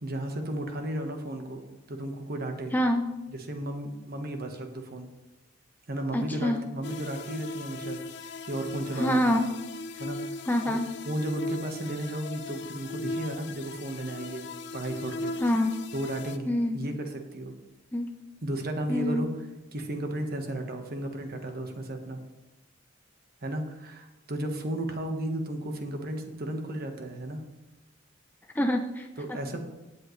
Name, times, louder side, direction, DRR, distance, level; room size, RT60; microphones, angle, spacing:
voice 1, 0.0-1.6 1.9-2.7 3.3-5.1 5.9-8.0 8.4-9.4 10.0-10.4 10.7-10.8 11.0-14.5 14.7-15.3 15.9-17.5 18.4-19.3 19.7-22.2 23.4-27.4 29.2-29.6, right 1 dB, 55° right, 5 dB, 1.3 m, -34 dB
voice 2, 2.7-3.1 6.1-6.6 9.0-9.5 10.5-10.9 15.4-15.8 16.5-16.8 17.9-18.1 18.9-19.3 28.5-29.1, left 1 dB, 10° left, 4 dB, 0.6 m, -26 dB
sound 1, 6.8-16.4, left 2 dB, 65° left, 0.7 m, -38 dB
17.5 x 7.6 x 3.2 m, 1.1 s
head